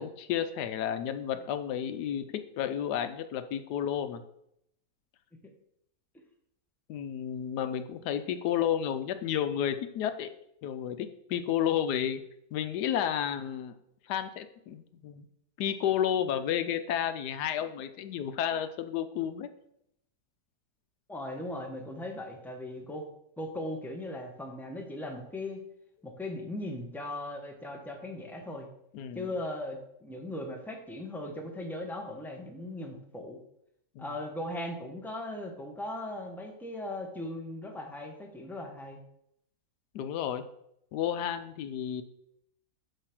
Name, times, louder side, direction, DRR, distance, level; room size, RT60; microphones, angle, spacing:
voice 1, 0.0-4.2 6.9-10.3 10.6-12.2 12.5-13.8 14.1-15.3 15.6-19.5 28.9-29.3 34.0-34.1 39.9-40.4 40.9-42.0, left 9 dB, 90° left, 10 dB, 1.2 m, -31 dB
voice 2, 21.1-23.1 23.4-25.6 26.0-28.7 29.1-33.4 34.0-39.0, left 1 dB, ahead, 2 dB, 0.8 m, -38 dB
8.0 x 3.3 x 5.9 m, 0.75 s
omnidirectional pair, 1.7 m